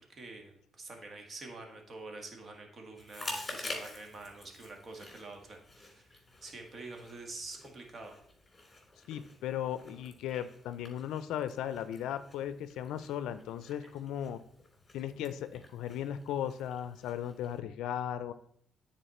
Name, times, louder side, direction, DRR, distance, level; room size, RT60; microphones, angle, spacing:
voice 1, 0.0-8.2, right 3 dB, 45° right, 3 dB, 1.6 m, -47 dB
Chewing mastication, 3.0-17.6, left 2 dB, 20° left, 2.8 m, -48 dB
voice 2, 9.1-14.4 14.9-18.3, left 10 dB, 90° left, 12 dB, 0.4 m, -36 dB
9.1 x 4.2 x 4.2 m, 0.68 s
cardioid pair, 90°, 0 cm